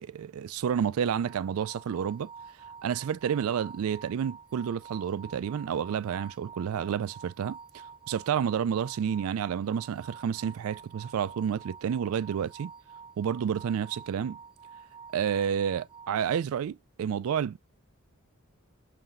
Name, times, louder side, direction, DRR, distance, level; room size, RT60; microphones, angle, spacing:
voice 1, 0.0-2.3 2.8-7.6 8.1-12.7 13.2-14.4 15.1-17.6, right 8 dB, 70° right, 0.3 m, -30 dB
sound 1, 1.2-16.4, right 6 dB, 20° right, 0.6 m, -48 dB
5.7 x 3.3 x 2.5 m
head